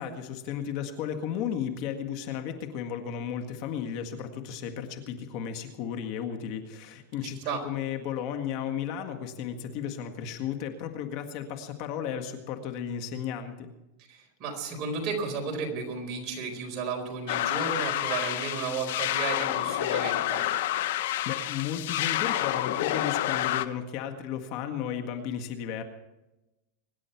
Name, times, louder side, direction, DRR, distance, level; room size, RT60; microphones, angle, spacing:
voice 1, 0.0-13.7 21.3-25.8, left 8 dB, 50° left, 6 dB, 1.7 m, -34 dB
voice 2, 7.2-7.6 14.1-20.4, right 4 dB, 35° right, 2 dB, 4.3 m, -33 dB
sound 1, 17.3-23.7, left 13 dB, 70° left, 0.8 m, -29 dB
24.5 x 11.0 x 4.6 m, 0.98 s
supercardioid pair, 150°, 0 cm